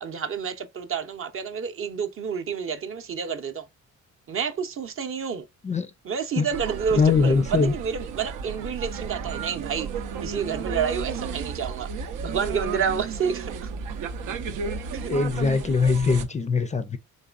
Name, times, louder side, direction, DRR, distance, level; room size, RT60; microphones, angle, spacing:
voice 1, 0.0-3.6 4.3-5.5 6.0-9.9 10.2-11.9 12.2-13.7 14.9-15.1, right 7 dB, 45° right, 0.6 m, -29 dB
sound 1, 6.5-16.2, right 6 dB, 85° right, 0.6 m, -33 dB
voice 2, 6.9-7.7 15.1-17.0, left 5 dB, 25° left, 0.4 m, -22 dB
4.1 x 3.1 x 2.4 m
cardioid pair, 90°, 30 cm